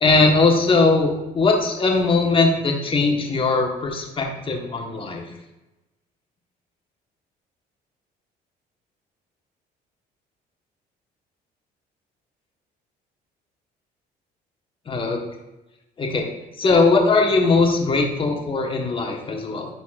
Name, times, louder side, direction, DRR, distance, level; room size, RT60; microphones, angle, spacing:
voice 1, 0.0-5.2 14.9-15.2 16.0-16.3 16.6-19.7, left 3 dB, 30° left, 1 dB, 1.3 m, -20 dB
11.0 x 4.1 x 2.4 m, 0.99 s
cardioid pair, 110°, 17 cm